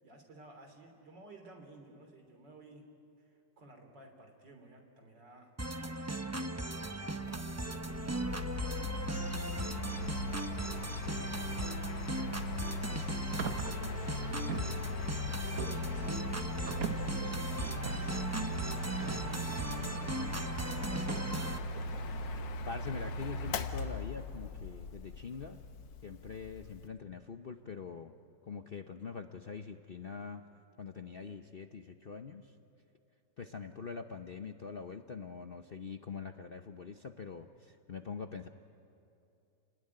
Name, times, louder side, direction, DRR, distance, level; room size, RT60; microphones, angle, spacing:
voice 1, 0.0-2.9 3.6-5.6 5.8-8.6 9.2-13.7 14.0-15.1 15.4-18.4 18.7-20.2 20.6-21.4, right 2 dB, 80° right, 4 dB, 3.9 m, -55 dB
sound 1, 5.6-21.6, right 2 dB, 20° right, 0.4 m, -38 dB
Mechanical fan, 7.2-26.9, left 3 dB, 85° left, 1.8 m, -39 dB
sound 2, 13.3-22.4, right 7 dB, 55° right, 1.4 m, -45 dB
voice 2, 22.7-25.6 26.0-28.1 28.4-30.4 30.8-32.5 33.4-38.5, left 5 dB, 45° left, 6 dB, 0.7 m, -44 dB
30.0 x 19.5 x 9.9 m, 2.7 s
omnidirectional pair, 1.9 m